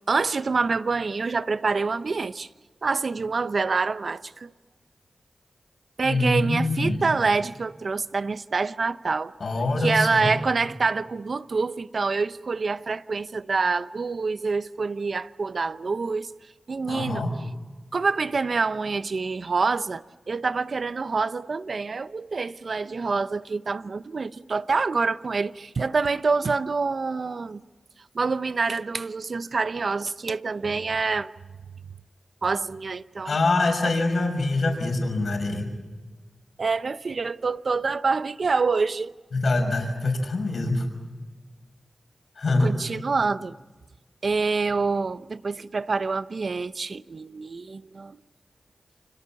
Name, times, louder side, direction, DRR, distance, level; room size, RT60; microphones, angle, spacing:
voice 1, 0.1-2.5 2.8-4.5 6.0-9.3 9.8-16.3 16.7-17.2 17.9-27.6 28.1-31.3 32.4-33.4 33.8-33.9 36.6-39.1 42.6-43.5 44.2-48.2, right 4 dB, 65° right, 0.8 m, -26 dB
voice 2, 6.0-7.2 9.4-10.3 16.9-17.3 33.2-35.7 39.3-40.9 42.4-42.7, left 2 dB, 75° left, 5.7 m, -24 dB
29.5 x 25.5 x 7.1 m
cardioid pair, 45°, 0 cm